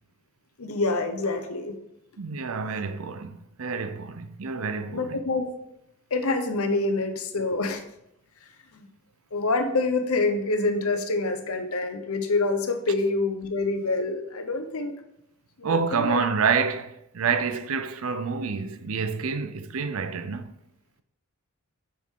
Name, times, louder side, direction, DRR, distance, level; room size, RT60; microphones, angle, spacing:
voice 1, 0.6-1.8 4.9-5.5 6.1-7.8 8.7-8.9 9.3-15.0 15.6-16.2, left 3 dB, 75° left, 0.9 m, -26 dB
voice 2, 2.2-5.2 15.6-20.5, right 5 dB, 70° right, 0.5 m, -28 dB
7.3 x 6.1 x 3.7 m
head